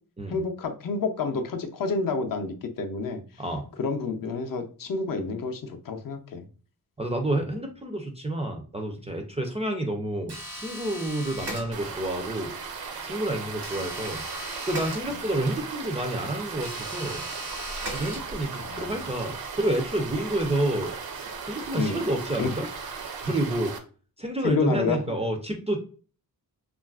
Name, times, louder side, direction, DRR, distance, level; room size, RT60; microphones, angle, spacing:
voice 1, 0.3-3.2 3.8-6.5 7.4-7.5 13.8-13.9 18.6-19.0 21.7-22.0 22.4-22.5 24.4-25.2, left 4 dB, 60° left, 5 dB, 0.5 m, -29 dB
voice 2, 7.0-12.5 13.0-14.2 14.7-17.2 17.9-20.9 21.5-22.7 23.2-23.7 24.2-25.8, right 1 dB, 20° right, 2 dB, 0.3 m, -29 dB
sound 1, 10.3-12.1 13.6-15.5 16.6-18.6, right 1 dB, 90° right, 1.1 m, -38 dB
sound 2, 11.7-23.8, right 5 dB, 70° right, 0.6 m, -37 dB
3.1 x 2.4 x 2.3 m, 0.38 s
wide cardioid pair, 150°, 38 cm